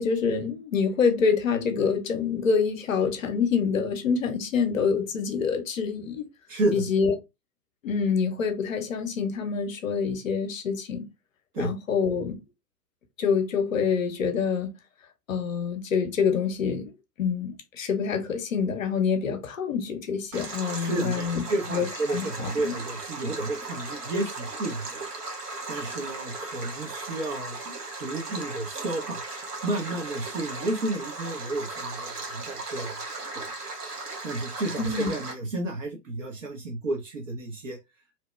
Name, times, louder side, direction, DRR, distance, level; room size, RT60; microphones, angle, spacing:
voice 1, 0.0-6.3 6.7-7.1 7.8-11.0 11.6-12.4 13.2-14.7 15.3-21.4 21.7-22.7 34.8-35.1, left 6 dB, 55° left, 0.7 m, -26 dB
voice 2, 6.5-6.8 11.5-11.7 20.7-25.1 25.7-27.6 28.0-29.2 29.6-32.9 33.3-33.5 34.2-37.8, right 2 dB, 50° right, 0.8 m, -31 dB
Stream, 20.3-35.3, right 3 dB, 70° right, 1.1 m, -37 dB
2.8 x 2.1 x 3.0 m
figure-of-eight pair, 115°, 49 cm